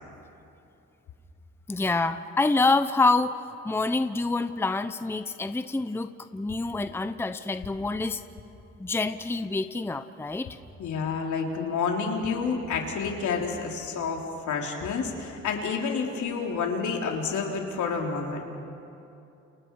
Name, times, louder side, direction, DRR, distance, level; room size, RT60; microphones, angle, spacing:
voice 1, 1.7-8.2 8.8-10.5, left 3 dB, 10° left, 10 dB, 0.7 m, -27 dB
voice 2, 10.8-18.4, left 5 dB, 75° left, 0 dB, 3.7 m, -29 dB
30.0 x 29.5 x 4.8 m, 2.7 s
cardioid pair, 90°, 30 cm